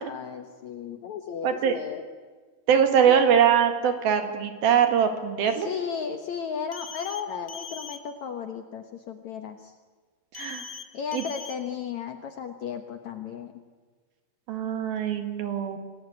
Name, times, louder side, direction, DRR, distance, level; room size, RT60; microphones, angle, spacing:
voice 1, 0.0-2.0 3.1-3.4 5.6-9.7 10.9-13.5, left 7 dB, 65° left, 7 dB, 2.0 m, -35 dB
voice 2, 1.4-1.8 2.7-5.7 10.3-10.7 11.1-11.2 14.5-15.8, right 8 dB, 65° right, 7 dB, 3.8 m, -22 dB
sound 1, 6.7-7.2 7.5-8.0 10.3-10.8 11.1-11.5, left 5 dB, 40° left, 1.2 m, -40 dB
27.5 x 19.5 x 9.6 m, 1.4 s
omnidirectional pair, 4.7 m